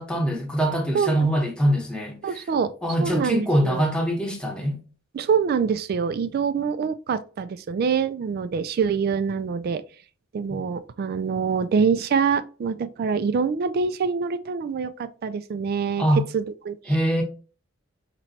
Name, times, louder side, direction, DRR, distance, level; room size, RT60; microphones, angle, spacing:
voice 1, 0.0-2.2 2.8-4.8 16.0-16.2 16.9-17.2, equal, 5° left, 0.9 m, -23 dB
voice 2, 0.9-1.3 2.2-2.7 3.0-3.8 5.1-9.8 10.3-16.1 16.3-17.0, right 6 dB, 50° right, 0.3 m, -25 dB
4.4 x 3.0 x 2.7 m
head